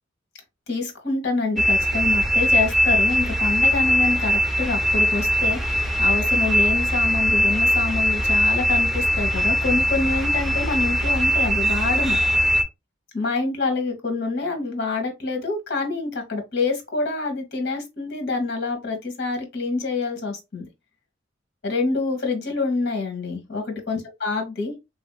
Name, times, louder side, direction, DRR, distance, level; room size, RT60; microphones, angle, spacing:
voice 1, 0.7-12.2 13.1-20.6 21.6-24.7, left 3 dB, 60° left, 1.3 m, -26 dB
sound 1, 1.6-12.6, equal, ahead, 0.5 m, -21 dB
3.5 x 2.8 x 2.2 m
head